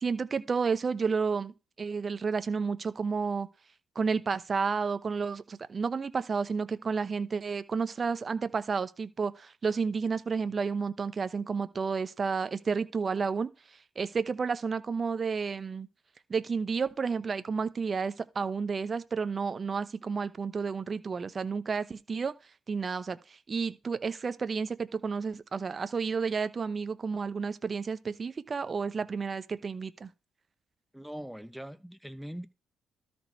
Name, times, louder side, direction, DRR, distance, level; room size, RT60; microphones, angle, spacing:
voice 1, 0.0-3.5 3.9-13.5 14.0-15.9 16.3-22.3 22.7-30.1, right 5 dB, 40° right, 0.8 m, -31 dB
voice 2, 30.9-32.5, equal, ahead, 1.0 m, -41 dB
13.0 x 4.3 x 4.5 m
cardioid pair, 90°, 0 cm